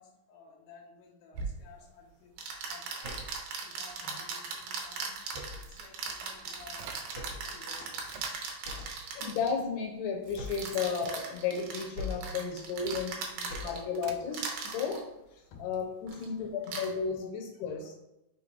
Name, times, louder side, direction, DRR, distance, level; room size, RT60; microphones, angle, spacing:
voice 1, 0.0-2.3 2.7-3.1 3.6-5.2 5.6-9.0 10.7-10.8 13.5-13.7 15.4-15.6 16.1-16.5 17.2-17.3, left 4 dB, 65° left, -3 dB, 2.3 m, -55 dB
sound 1, 1.3-1.5 2.4-9.5 10.5-14.0 14.3-15.0 16.1-16.3 16.6-16.9, right 5 dB, 70° right, 2.2 m, -38 dB
sound 2, 3.0-3.4 5.3-5.8 7.1-7.5 8.6-9.0 10.3-10.8 11.9-12.4 13.5-13.9, left 2 dB, 20° right, 1.6 m, -41 dB
sound 3, 5.5-7.3 7.7-8.6 9.4-9.5 10.0-12.1 12.6-14.3, right 7 dB, 90° right, 1.9 m, -49 dB
voice 2, 9.2-15.1 15.6-17.9, left 5 dB, 85° left, 1 dB, 3.0 m, -34 dB
8.0 x 4.7 x 2.6 m, 0.92 s
omnidirectional pair, 4.6 m